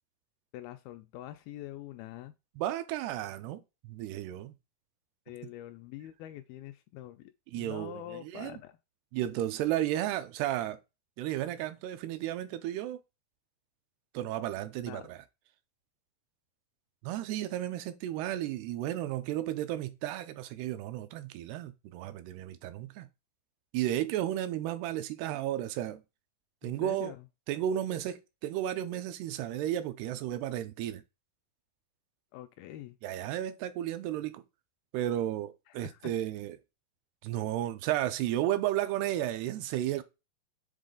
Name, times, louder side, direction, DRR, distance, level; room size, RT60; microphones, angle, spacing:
voice 1, 0.5-2.3 5.3-8.8 14.9-15.1 26.6-27.3 32.3-33.0 35.7-36.1, left 13 dB, 85° left, 2.2 m, -45 dB
voice 2, 2.6-4.5 7.5-8.6 9.1-10.8 11.2-13.0 14.1-15.2 17.0-23.1 23.7-26.0 26.6-27.1 27.5-31.0 33.0-34.4 34.9-36.6 37.2-40.0, right 12 dB, 85° right, 2.7 m, -33 dB
7.3 x 3.7 x 3.8 m
omnidirectional pair, 4.6 m